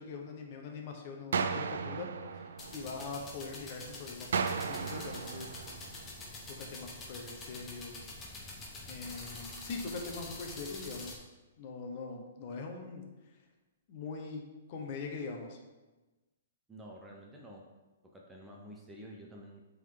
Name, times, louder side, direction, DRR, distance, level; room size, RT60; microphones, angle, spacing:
voice 1, 0.0-5.5 6.5-8.1 8.9-11.2 11.6-13.0 13.9-15.6, left 4 dB, 40° left, 3 dB, 1.0 m, -42 dB
sound 1, 1.3-3.4 4.3-6.4, right 5 dB, 75° right, 0.5 m, -36 dB
sound 2, 2.6-11.2, left 2 dB, 15° left, 1.0 m, -46 dB
voice 2, 16.7-17.7 18.1-19.6, equal, 10° right, -1 dB, 0.6 m, -50 dB
8.2 x 3.9 x 3.7 m, 1.2 s
hypercardioid pair, 160°, 0 cm